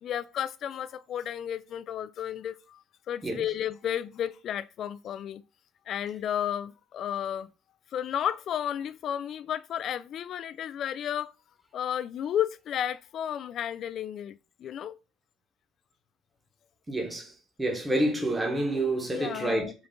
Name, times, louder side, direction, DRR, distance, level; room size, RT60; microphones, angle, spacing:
voice 1, 0.0-5.4 5.9-7.5 7.9-11.3 11.7-14.9 19.1-19.7, left 10 dB, 50° left, 0.3 m, -33 dB
voice 2, 16.9-19.7, right 1 dB, 10° right, 1.2 m, -28 dB
5.0 x 2.4 x 3.6 m
hypercardioid pair, 75°, 0 cm